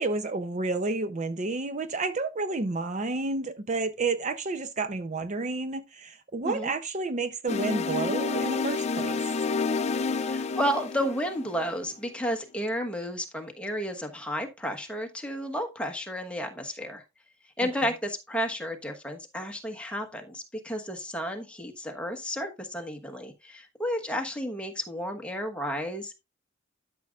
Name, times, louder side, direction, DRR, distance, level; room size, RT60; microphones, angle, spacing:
voice 1, 0.0-9.2, right 3 dB, 35° right, 0.6 m, -30 dB
sound 1, 7.5-11.8, left 4 dB, 35° left, 0.5 m, -29 dB
voice 2, 10.2-17.0 17.6-26.1, equal, 5° left, 1.2 m, -32 dB
12.5 x 6.2 x 2.4 m
head